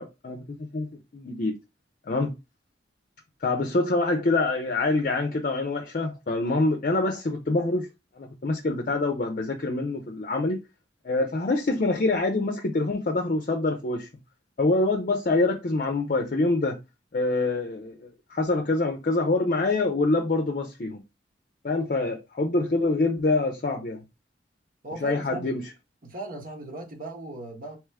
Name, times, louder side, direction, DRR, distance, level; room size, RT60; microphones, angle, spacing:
voice 1, 0.0-1.6 2.1-2.3 3.4-7.9 8.2-10.6 11.0-14.1 14.6-16.8 17.1-21.0 21.6-24.0 25.0-25.7, left 2 dB, 50° left, 0.5 m, -25 dB
voice 2, 24.8-25.5 26.0-27.8, right 2 dB, 50° right, 1.2 m, -38 dB
3.5 x 3.0 x 3.4 m
head